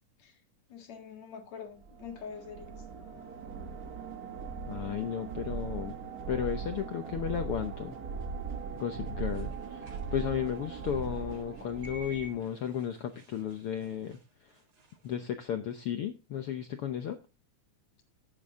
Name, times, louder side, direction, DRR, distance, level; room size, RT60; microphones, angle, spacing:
voice 1, 0.7-2.8, left 6 dB, 60° left, 2.9 m, -45 dB
sound 1, 1.8-12.4, right 5 dB, 80° right, 0.8 m, -39 dB
voice 2, 4.7-6.0 6.3-8.0 8.7-14.6 15.0-17.2, left 9 dB, 80° left, 1.2 m, -34 dB
sound 2, 9.3-15.2, right 3 dB, 35° right, 2.4 m, -60 dB
11.0 x 10.5 x 3.7 m
omnidirectional pair, 3.7 m